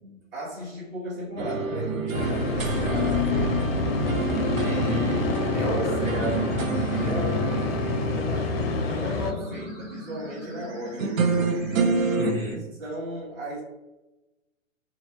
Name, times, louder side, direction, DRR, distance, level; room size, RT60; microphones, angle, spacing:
voice 1, 0.0-3.7 5.5-6.5 6.8-11.5 12.6-13.6, equal, 45° right, -8 dB, 1.1 m, -36 dB
sound 1, 1.4-10.0 11.0-12.3, right 4 dB, 90° right, 0.6 m, -28 dB
sound 2, 2.1-9.3, left 5 dB, 50° left, 0.5 m, -28 dB
sound 3, 2.5-12.5, right 1 dB, 65° right, 1.4 m, -36 dB
voice 2, 4.5-6.4 12.2-12.6, right 1 dB, 15° right, -5 dB, 0.6 m, -31 dB
2.5 x 2.3 x 2.8 m, 1.1 s
hypercardioid pair, 125°, 39 cm